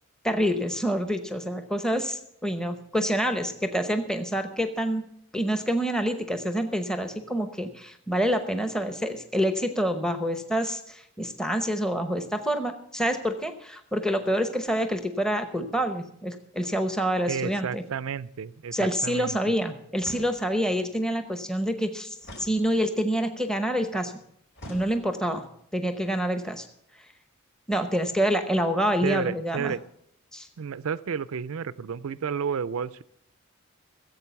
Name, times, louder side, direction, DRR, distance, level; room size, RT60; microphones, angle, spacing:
voice 1, 0.2-5.1 5.3-17.8 18.7-24.1 24.7-25.4 25.7-26.7 27.7-29.7 30.3-30.5, equal, 5° left, 7 dB, 0.8 m, -27 dB
voice 2, 17.3-19.4 29.0-29.8 30.6-33.0, right 6 dB, 70° right, 16 dB, 0.4 m, -31 dB
sound 1, 20.0-20.7 22.2-23.2 24.6-25.4, equal, 55° left, 4.2 m, -45 dB
15.5 x 8.0 x 6.9 m, 0.72 s
head